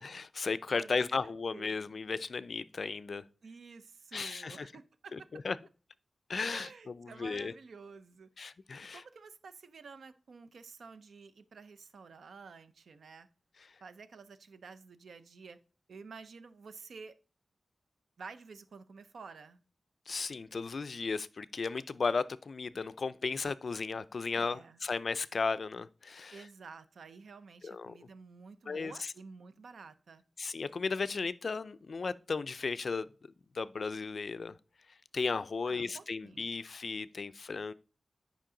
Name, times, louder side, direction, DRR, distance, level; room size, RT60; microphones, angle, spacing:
voice 1, 0.0-3.2 4.1-4.7 5.1-5.6 6.3-7.5 8.4-9.0 20.1-26.5 27.6-28.0 28.7-29.1 30.4-33.1 33.5-34.5 35.1-37.7, left 4 dB, 55° left, 0.4 m, -35 dB
voice 2, 0.7-1.1 1.5-1.8 3.4-5.3 6.5-8.3 8.9-13.3 13.8-15.6 15.9-17.2 18.2-19.6 24.3-24.8 26.3-30.2 35.7-36.5, right 5 dB, 90° right, 0.6 m, -51 dB
10.0 x 5.2 x 3.8 m
wide cardioid pair, 120°, 0 cm